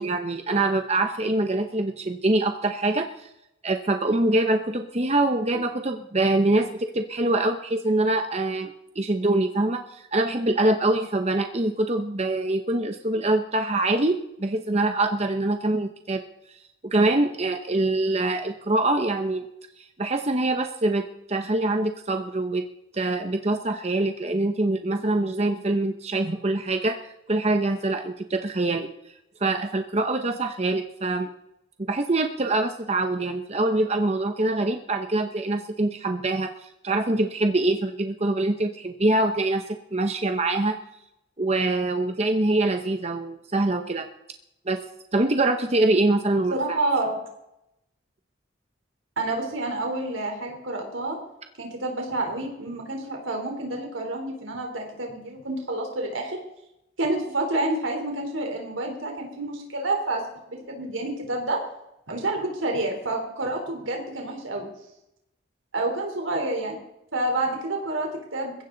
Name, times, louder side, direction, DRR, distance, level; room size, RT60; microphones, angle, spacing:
voice 1, 0.0-3.3 3.6-16.2 16.8-19.5 19.8-22.6 22.9-27.0 27.3-28.9 29.4-31.3 31.8-39.6 39.9-40.8 41.4-44.1 44.7-44.8 45.1-46.8, right 2 dB, 30° right, 6 dB, 0.9 m, -24 dB
voice 2, 46.5-47.2 49.2-51.2 51.6-56.4 57.0-60.2 60.5-61.6 62.1-64.6 65.7-66.8 67.1-68.6, right 2 dB, 85° right, 2 dB, 3.7 m, -28 dB
21.5 x 16.0 x 4.0 m, 0.84 s
head